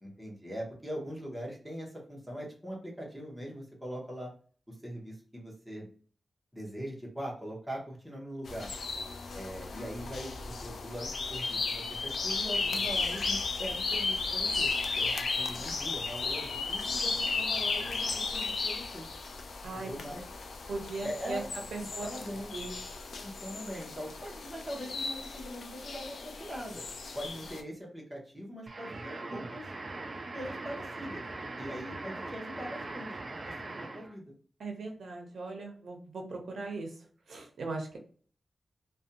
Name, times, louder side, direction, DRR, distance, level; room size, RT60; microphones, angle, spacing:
voice 1, 0.0-4.3 4.7-5.9 6.5-8.7 9.3-14.7 15.0-19.1 19.7-20.2 21.0-21.5 21.8-22.5 23.2-26.8 27.1-29.7 30.3-31.3 31.6-33.1 33.4-34.3, equal, ahead, -3 dB, 0.8 m, -41 dB
sound 1, 8.5-27.6, left 4 dB, 70° left, 0.3 m, -35 dB
voice 2, 20.7-21.4 21.7-22.1 22.5-22.8 34.6-36.9 37.3-38.0, right 3 dB, 80° right, 2 dB, 0.6 m, -38 dB
sound 2, 28.7-34.2, right 2 dB, 35° right, 0.3 m, -41 dB
2.5 x 2.2 x 2.7 m, 0.43 s
wide cardioid pair, 170°, 0 cm